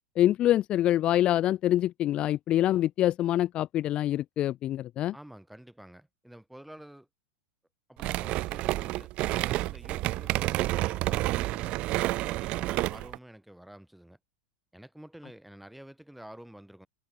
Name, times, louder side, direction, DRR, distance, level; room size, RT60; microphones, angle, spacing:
voice 1, 0.2-5.1, left 13 dB, 35° left, 0.4 m, -25 dB
voice 2, 5.1-7.1 7.9-14.2 14.7-16.9, right 1 dB, 5° right, 7.7 m, -49 dB
sound 1, 8.0-13.2, right 18 dB, 45° right, 0.3 m, -29 dB
hypercardioid pair, 95°, 3 cm